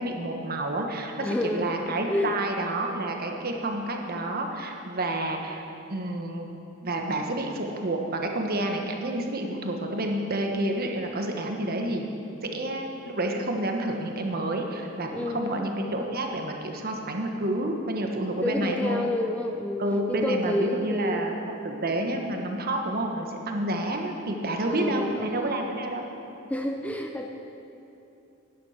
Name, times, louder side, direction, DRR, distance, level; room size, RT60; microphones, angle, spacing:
voice 1, 0.0-5.6 5.9-6.5 6.8-12.1 12.5-19.0 19.8-21.3 21.6-26.0, right 1 dB, 45° right, 3 dB, 1.2 m, -29 dB
voice 2, 1.1-2.4 15.1-15.7 18.4-21.4 24.6-25.6 26.5-27.4, left 1 dB, 5° left, 3 dB, 0.5 m, -30 dB
11.5 x 9.6 x 5.7 m, 2.8 s
head